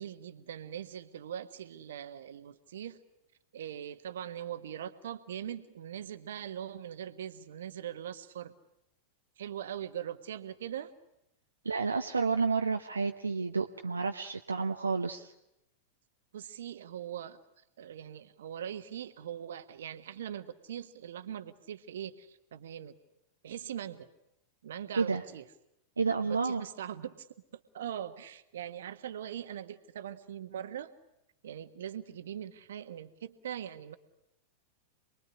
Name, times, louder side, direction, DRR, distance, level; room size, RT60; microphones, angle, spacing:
voice 1, 0.0-3.0 3.5-8.5 9.4-10.9 16.3-17.4 17.8-23.0 23.4-24.1 24.6-25.4 26.2-27.3 27.5-30.9 31.4-34.0, right 10 dB, 60° right, 11 dB, 1.5 m, -41 dB
voice 2, 11.6-15.3 24.9-25.2 26.0-26.6, right 4 dB, 75° right, 4 dB, 0.9 m, -30 dB
27.5 x 21.5 x 10.0 m, 0.86 s
figure-of-eight pair, 90°, 0 cm